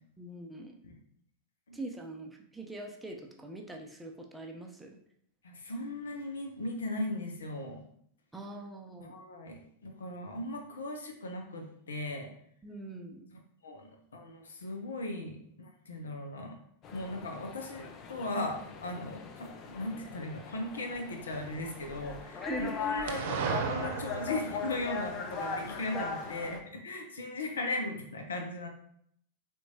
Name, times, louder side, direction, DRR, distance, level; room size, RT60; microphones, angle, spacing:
voice 1, 0.2-0.8 1.7-5.0 8.3-9.2 12.6-13.2 22.4-22.8 25.9-26.1, right 1 dB, 5° right, 1 dB, 0.7 m, -42 dB
voice 2, 5.4-7.8 9.0-12.3 13.6-16.6 16.9-28.7, left 2 dB, 70° left, 4 dB, 0.7 m, -38 dB
sound 1, 16.8-26.6, left 4 dB, 35° left, 0.6 m, -40 dB
sound 2, 21.3-22.2 23.1-25.5, right 6 dB, 50° right, 0.5 m, -36 dB
4.5 x 3.5 x 2.8 m, 0.67 s
figure-of-eight pair, 90°, 0 cm